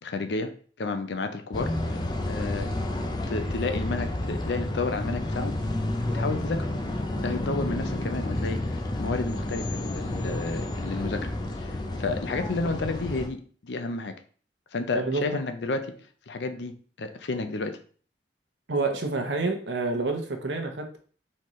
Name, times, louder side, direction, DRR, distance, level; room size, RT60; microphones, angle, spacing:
voice 1, 0.0-1.8 2.3-2.7 3.3-5.8 6.1-6.7 7.2-14.2 14.7-17.8, left 3 dB, 80° left, 8 dB, 0.6 m, -31 dB
sound 1, 1.5-13.3, left 1 dB, 25° left, 0.5 m, -30 dB
voice 2, 18.7-21.0, right 3 dB, 80° right, 4 dB, 0.9 m, -28 dB
4.2 x 3.8 x 3.1 m, 0.43 s
head